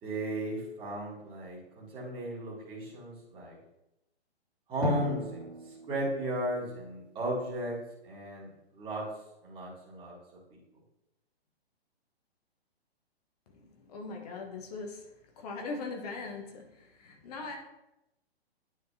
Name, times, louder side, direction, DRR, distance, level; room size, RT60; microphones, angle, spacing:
voice 1, 0.0-3.6 4.7-9.1 9.4-10.1 10.5-10.6, equal, 15° right, -7 dB, 1.9 m, -35 dB
Drum, 4.8-7.3, right 5 dB, 85° right, 1.8 m, -40 dB
voice 2, 13.5-15.1 15.4-17.6, left 3 dB, 40° left, 2 dB, 1.3 m, -40 dB
9.6 x 5.2 x 2.8 m, 0.89 s
figure-of-eight pair, 120°, 32 cm